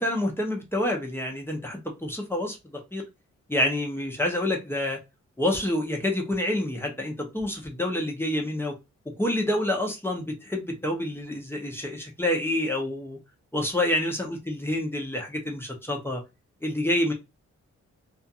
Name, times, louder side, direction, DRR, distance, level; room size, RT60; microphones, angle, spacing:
voice 1, 0.0-2.6 2.9-3.0 3.5-5.0 5.4-8.7 9.2-13.2 13.5-14.2 14.5-16.2 16.6-17.1, left 1 dB, 10° left, 0.6 m, -27 dB
2.4 x 2.3 x 2.7 m
wide cardioid pair, 135°, 29 cm